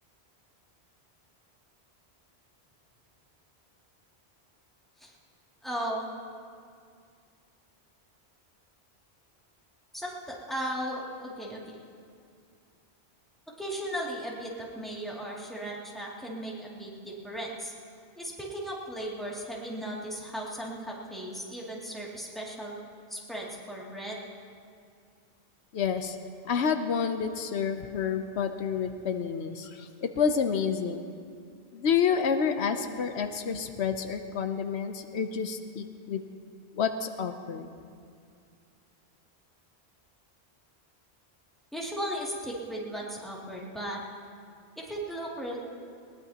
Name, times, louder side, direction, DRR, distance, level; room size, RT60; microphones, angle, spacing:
voice 1, 5.6-6.1 9.9-11.8 13.6-17.7 18.2-22.8 23.1-24.2 41.7-44.0 44.7-45.6, right 1 dB, ahead, -5 dB, 2.5 m, -36 dB
voice 2, 25.7-26.2 26.4-31.0 31.7-36.2 36.8-37.7, left 6 dB, 85° left, 7 dB, 1.0 m, -29 dB
20.5 x 19.5 x 2.9 m, 2.3 s
omnidirectional pair, 1.1 m